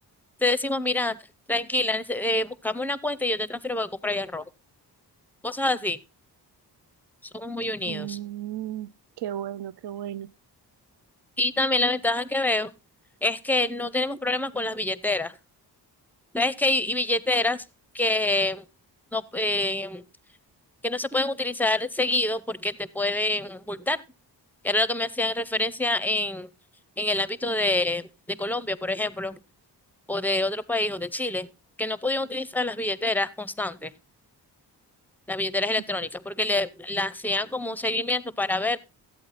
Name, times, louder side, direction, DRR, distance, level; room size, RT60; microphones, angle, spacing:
voice 1, 0.4-1.2 1.5-4.4 5.4-6.0 7.3-8.2 11.4-12.7 13.2-15.3 16.3-17.6 17.9-18.6 19.1-20.0 20.8-24.0 24.6-26.5 27.0-29.4 30.1-31.5 31.8-33.9 35.3-38.8, left 2 dB, 5° left, 0.5 m, -26 dB
voice 2, 7.9-8.9 9.2-10.3, right 12 dB, 75° right, 0.6 m, -34 dB
14.0 x 8.6 x 4.1 m
wide cardioid pair, 155°, 40 cm